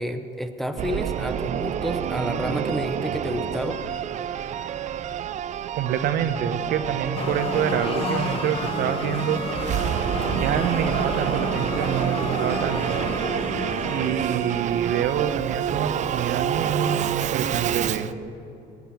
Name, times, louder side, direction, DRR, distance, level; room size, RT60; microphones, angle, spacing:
voice 1, 0.0-4.0, equal, ahead, 7 dB, 0.7 m, -30 dB
Singing / Musical instrument, 0.8-18.1, right 9 dB, 45° right, 0.4 m, -28 dB
voice 2, 5.8-9.4 10.3-13.0 13.9-18.1, right 8 dB, 70° right, 9 dB, 0.9 m, -26 dB
sound 1, 7.1-14.1, left 4 dB, 35° left, 1.0 m, -31 dB
18.0 x 7.2 x 7.1 m, 2.8 s
cardioid pair, 110°, 17 cm